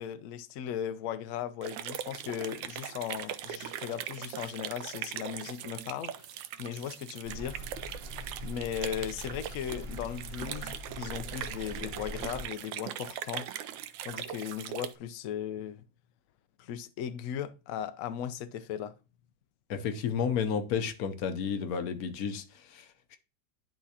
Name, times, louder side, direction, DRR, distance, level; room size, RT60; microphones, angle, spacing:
voice 1, 0.0-6.3 6.6-7.7 8.4-13.6 14.0-15.8 16.6-18.9, left 9 dB, 85° left, 0.7 m, -37 dB
sound 1, 1.6-14.9, right 10 dB, 85° right, 1.3 m, -40 dB
sound 2, 7.2-12.5, right 1 dB, 70° right, 1.9 m, -43 dB
voice 2, 19.7-23.2, left 7 dB, 65° left, 1.0 m, -32 dB
10.5 x 3.7 x 2.8 m
omnidirectional pair, 2.0 m